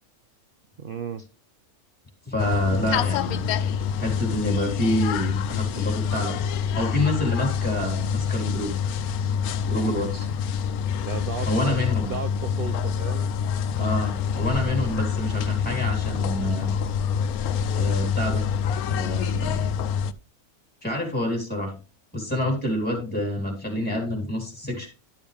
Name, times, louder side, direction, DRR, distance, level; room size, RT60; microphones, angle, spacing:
voice 1, 0.8-1.3 10.9-13.3, right 7 dB, 80° right, 11 dB, 0.4 m, -35 dB
voice 2, 2.3-3.5 4.0-6.4 6.7-8.7 9.6-10.3 11.5-12.1 13.8-16.7 17.7-18.5 18.9-19.7 20.8-21.7 22.1-24.9, left 1 dB, 5° left, 1 dB, 3.6 m, -27 dB
sound 1, 2.4-20.1, left 7 dB, 80° left, 1.1 m, -26 dB
11.5 x 7.0 x 3.4 m, 0.33 s
omnidirectional pair, 1.6 m